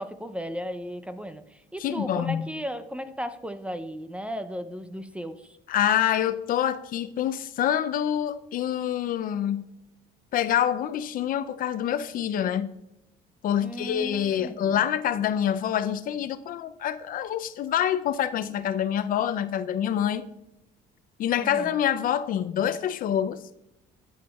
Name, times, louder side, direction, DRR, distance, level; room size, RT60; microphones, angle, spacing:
voice 1, 0.0-5.5 13.6-14.8 21.4-21.8, equal, 5° right, 0.5 m, -35 dB
voice 2, 1.8-2.5 5.7-9.6 10.3-12.7 13.4-20.3 21.2-23.4, left 10 dB, 55° left, 0.4 m, -26 dB
11.0 x 7.1 x 2.3 m
cardioid pair, 110°, 17 cm